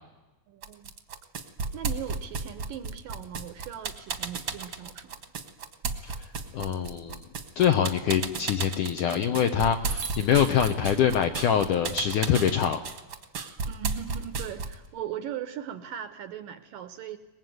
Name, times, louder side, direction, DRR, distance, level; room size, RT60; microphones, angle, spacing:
voice 1, 0.5-0.9 1.7-5.1 13.7-17.2, right 10 dB, 70° right, 11 dB, 2.2 m, -39 dB
sound 1, 0.6-14.9, right 4 dB, 50° right, 1.6 m, -33 dB
voice 2, 6.5-7.2 7.6-12.8, left 8 dB, 70° left, 7 dB, 2.0 m, -24 dB
24.0 x 20.5 x 9.4 m, 1.1 s
omnidirectional pair, 4.9 m